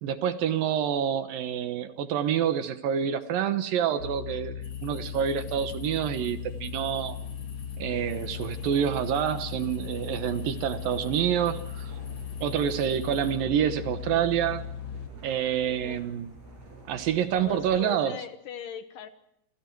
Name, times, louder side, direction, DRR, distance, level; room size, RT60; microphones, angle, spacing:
voice 1, 0.0-4.6 4.8-7.2 7.8-11.9 12.4-14.6 15.2-16.3 16.9-18.1, right 9 dB, 70° right, 10 dB, 2.7 m, -27 dB
sound 1, 4.0-15.1, left 8 dB, 40° left, 2.2 m, -37 dB
sound 2, 4.6-13.4, left 4 dB, 90° left, 7.5 m, -54 dB
sound 3, 7.9-17.8, right 1 dB, 40° right, 8.3 m, -49 dB
voice 2, 17.3-19.1, left 8 dB, 65° left, 9 dB, 2.6 m, -39 dB
29.0 x 26.0 x 4.6 m, 0.77 s
omnidirectional pair, 4.5 m